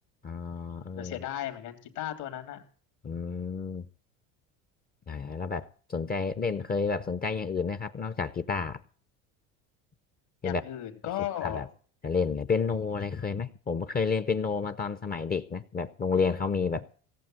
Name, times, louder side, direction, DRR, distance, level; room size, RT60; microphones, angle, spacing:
voice 1, 0.2-1.1 3.0-3.9 5.1-8.8 10.4-10.6 11.4-11.7 12.0-16.9, left 5 dB, 20° left, 0.7 m, -30 dB
voice 2, 0.7-2.6 10.4-11.7, left 12 dB, 70° left, 2.7 m, -36 dB
17.5 x 7.3 x 7.7 m
hypercardioid pair, 85°, 41 cm